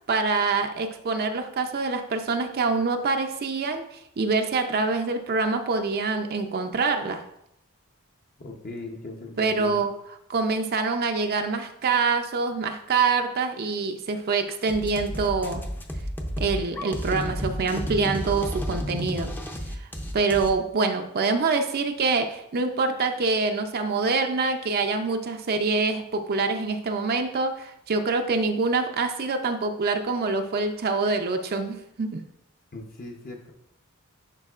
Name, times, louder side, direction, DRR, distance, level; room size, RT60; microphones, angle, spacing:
voice 1, 0.1-7.2 9.4-9.9 10.3-15.6 16.4-19.3 19.8-19.9 20.1-32.2, right 4 dB, 45° right, 6 dB, 0.5 m, -25 dB
voice 2, 8.4-9.8 32.7-33.5, left 2 dB, 40° left, 1 dB, 0.8 m, -39 dB
sound 1, 14.7-20.5, equal, 10° left, 0.6 m, -31 dB
10.5 x 4.5 x 2.4 m, 0.79 s
head